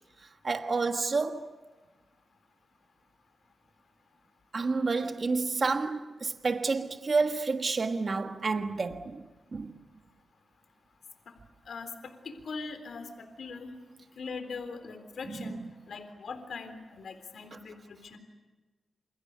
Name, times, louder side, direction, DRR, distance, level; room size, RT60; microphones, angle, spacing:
voice 1, 0.2-1.5 4.5-9.2 9.5-9.7 15.3-15.6 17.5-17.6, right 4 dB, 40° right, 1.4 m, -30 dB
voice 2, 11.7-13.7 14.2-15.6 15.9-18.2, left 4 dB, 65° left, 3.8 m, -41 dB
28.5 x 28.5 x 6.8 m
wide cardioid pair, 165°, 0 cm